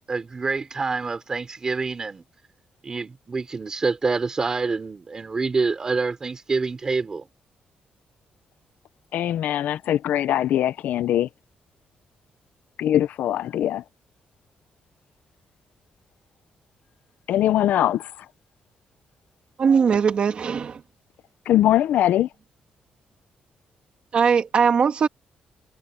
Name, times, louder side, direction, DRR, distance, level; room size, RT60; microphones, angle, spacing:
voice 1, 0.1-2.2 2.8-7.3, right 4 dB, 25° right, 4.3 m, -26 dB
voice 2, 9.1-11.3 12.8-13.8 17.3-18.1 21.5-22.3, left 12 dB, 75° left, 0.6 m, -21 dB
voice 3, 19.6-20.8 24.1-25.1, right 6 dB, 40° right, 1.8 m, -20 dB
cardioid pair, 180°, 3 cm